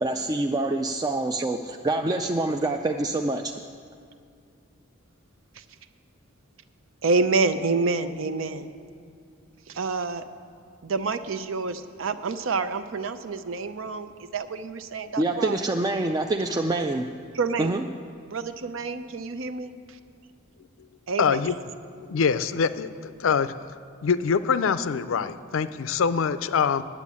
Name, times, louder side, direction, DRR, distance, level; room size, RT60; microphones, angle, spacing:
voice 1, 0.0-3.4 15.2-17.0 17.6-17.9, right 2 dB, 20° right, 4 dB, 0.3 m, -26 dB
voice 2, 7.0-8.7 9.7-10.2 10.8-15.6 17.3-17.7 18.3-20.0 21.1-21.5, right 4 dB, 70° right, 11 dB, 0.6 m, -28 dB
voice 3, 21.2-21.5 22.0-23.5 24.0-26.8, left 6 dB, 70° left, 14 dB, 0.4 m, -24 dB
10.0 x 8.1 x 8.4 m, 2.3 s
head